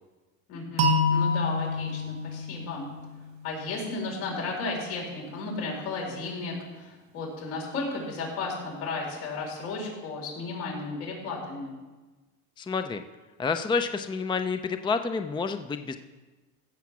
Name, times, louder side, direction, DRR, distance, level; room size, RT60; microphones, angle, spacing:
voice 1, 0.5-2.9 3.4-11.7, left 3 dB, 80° left, -2 dB, 4.9 m, -34 dB
sound 1, 0.8-3.7, left 2 dB, 85° right, 2.3 m, -27 dB
voice 2, 12.6-13.0 13.4-16.0, left 4 dB, 10° left, 8 dB, 0.6 m, -29 dB
15.5 x 7.3 x 6.1 m, 1.2 s
supercardioid pair, 100°, 42 cm